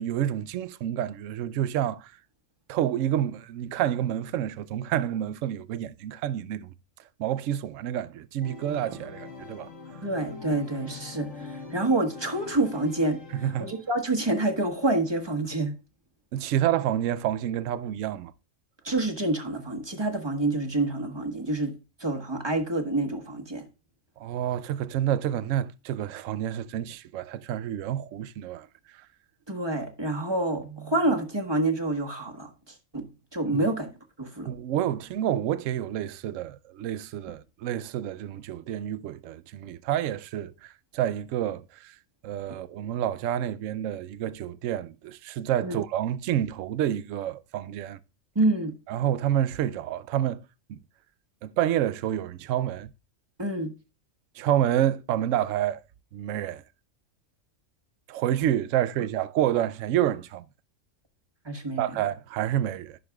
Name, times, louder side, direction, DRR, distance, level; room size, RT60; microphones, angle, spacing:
voice 1, 0.0-2.1 2.7-6.7 7.2-9.7 13.3-13.7 16.3-18.3 24.2-28.7 33.5-33.7 34.5-41.9 42.2-48.0 48.9-50.4 50.7-50.8 51.4-52.9 54.4-55.8 56.1-56.6 58.1-60.4 61.8-63.0, right 11 dB, 75° right, 0.9 m, -28 dB
Organ, 8.4-14.1, left 3 dB, 60° left, 2.4 m, -43 dB
voice 2, 10.0-13.2 13.6-15.7 18.8-21.7 22.0-23.6 29.5-32.5 32.9-33.1 33.3-33.9 34.2-34.5 45.6-45.8 48.3-48.7 53.4-53.7 61.4-62.0, right 2 dB, 20° right, 1.4 m, -27 dB
14.0 x 6.6 x 2.3 m
omnidirectional pair, 1.4 m